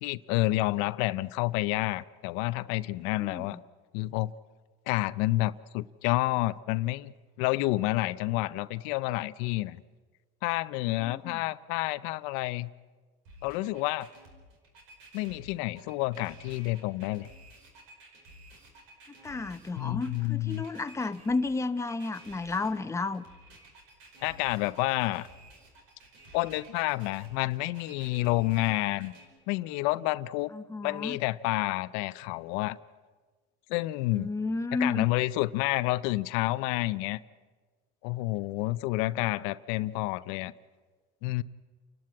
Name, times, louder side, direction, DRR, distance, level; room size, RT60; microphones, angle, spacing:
voice 1, 0.0-3.6 3.9-4.3 4.9-7.1 7.4-9.8 10.4-12.7 13.4-14.1 15.1-17.3 19.8-20.6 24.2-25.3 26.3-29.1 29.5-30.5 30.8-32.8 33.7-34.3 34.8-37.2 38.0-40.5 41.2-41.4, left 19 dB, 90° left, 0.6 m, -29 dB
voice 2, 3.2-3.6 11.0-11.4 19.2-23.2 30.5-31.2 34.1-35.1, left 3 dB, 15° left, 0.8 m, -32 dB
sound 1, 13.2-29.2, right 1 dB, 80° right, 5.0 m, -53 dB
28.5 x 12.5 x 8.7 m
cardioid pair, 115°, 21 cm